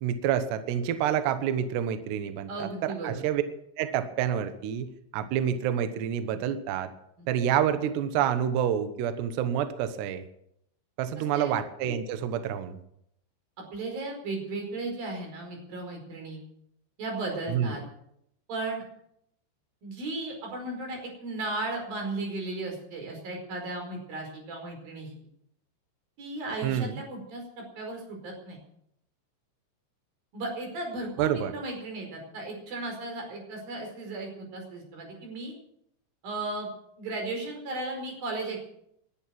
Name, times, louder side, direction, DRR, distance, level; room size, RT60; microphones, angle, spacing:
voice 1, 0.0-3.4 3.8-4.9 5.1-6.9 7.3-10.2 11.0-12.8 17.5-17.7 26.6-27.0 31.2-31.5, right 9 dB, 70° right, 9 dB, 2.8 m, -28 dB
voice 2, 2.5-3.2 7.2-7.3 11.3-11.5 13.6-16.4 17.0-17.8 18.5-18.8 19.8-25.1 26.2-28.6 30.3-35.5 36.2-36.7 37.0-38.7, right 2 dB, 45° right, 2 dB, 6.3 m, -35 dB
20.5 x 11.5 x 6.0 m, 0.73 s
omnidirectional pair, 6.0 m